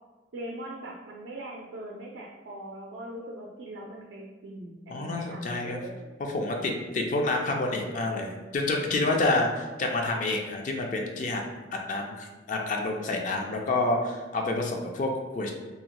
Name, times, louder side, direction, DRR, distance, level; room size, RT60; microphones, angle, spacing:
voice 1, 0.3-6.1, right 1 dB, 90° right, -2 dB, 0.4 m, -41 dB
voice 2, 4.9-5.8 6.3-11.4 11.9-15.5, left 2 dB, 45° left, 2 dB, 0.4 m, -28 dB
2.7 x 2.1 x 2.9 m, 1.3 s
head